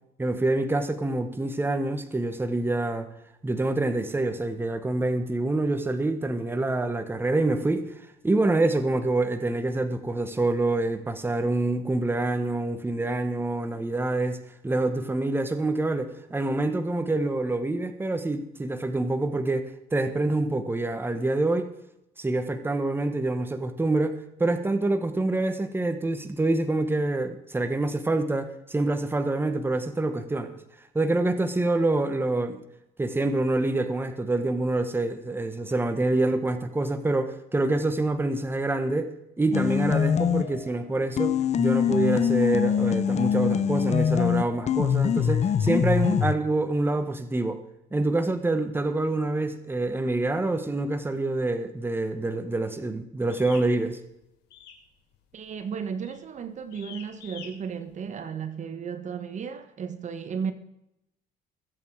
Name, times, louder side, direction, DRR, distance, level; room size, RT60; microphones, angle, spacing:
voice 1, 0.2-3.1 3.4-7.9 8.2-14.4 14.6-21.7 22.2-30.5 30.9-32.6 33.0-47.6 47.9-54.0, right 2 dB, 15° right, 1.5 m, -26 dB
sound 1, 39.5-40.7 41.2-46.3, left 8 dB, 40° left, 0.9 m, -24 dB
sound 2, 53.3-53.7 54.5-54.9 55.1-55.5 56.0-56.2 56.7-57.5, left 8 dB, 80° left, 3.8 m, -45 dB
voice 2, 55.3-60.5, right 6 dB, 45° right, 1.3 m, -34 dB
21.5 x 8.3 x 4.8 m
cardioid pair, 110°, 17 cm